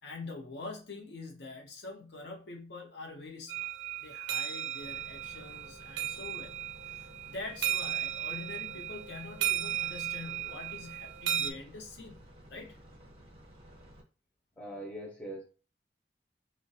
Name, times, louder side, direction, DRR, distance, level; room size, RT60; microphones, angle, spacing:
voice 1, 0.0-3.7 4.0-6.6 6.9-12.2 12.5-12.8, left 3 dB, 70° left, 2 dB, 0.6 m, -45 dB
sound 1, 3.5-11.5, right 11 dB, 80° right, 0.4 m, -35 dB
sound 2, 4.8-14.0, equal, 35° right, 0.6 m, -54 dB
voice 2, 14.6-15.4, right 1 dB, 10° left, -1 dB, 0.6 m, -41 dB
2.3 x 2.1 x 2.6 m, 0.36 s
head